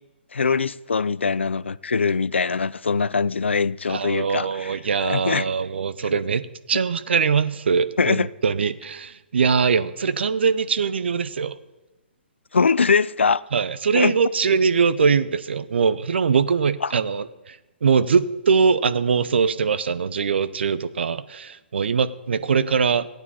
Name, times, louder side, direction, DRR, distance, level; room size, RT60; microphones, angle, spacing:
voice 1, 0.3-5.5 6.0-6.1 8.0-8.3 12.5-13.4 13.9-14.2 16.8-16.9, left 5 dB, 85° left, 0.4 m, -22 dB
voice 2, 3.9-11.6 13.5-23.1, right 5 dB, 70° right, 0.7 m, -22 dB
15.5 x 9.3 x 4.2 m
figure-of-eight pair, 130°, 6 cm